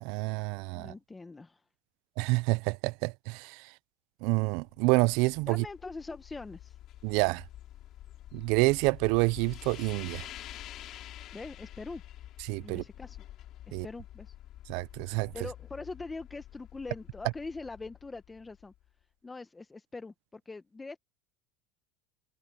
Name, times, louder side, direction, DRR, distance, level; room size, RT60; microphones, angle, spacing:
voice 1, 0.0-0.9 2.2-3.6 4.2-5.6 7.0-7.4 8.3-10.2 12.5-12.8 13.7-13.9 14.7-15.3, right 26 dB, 65° right, 0.4 m, -28 dB
voice 2, 0.7-1.6 5.5-6.8 11.3-12.0 12.6-13.2 13.7-14.3 15.3-18.7 19.2-21.0, left 3 dB, 15° left, 0.9 m, -42 dB
sound 1, 4.7-18.8, left 13 dB, 45° left, 5.1 m, -48 dB
supercardioid pair, 130°, 0 cm